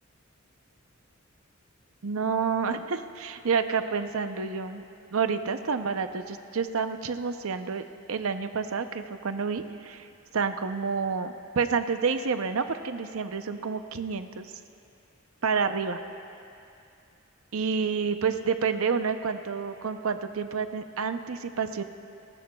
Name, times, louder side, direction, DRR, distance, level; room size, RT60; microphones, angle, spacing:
voice 1, 2.0-4.8 5.1-7.8 8.1-10.0 10.3-14.5 15.4-16.0 17.5-21.8, right 5 dB, 80° right, 8 dB, 0.7 m, -29 dB
29.0 x 15.5 x 2.3 m, 2.6 s
head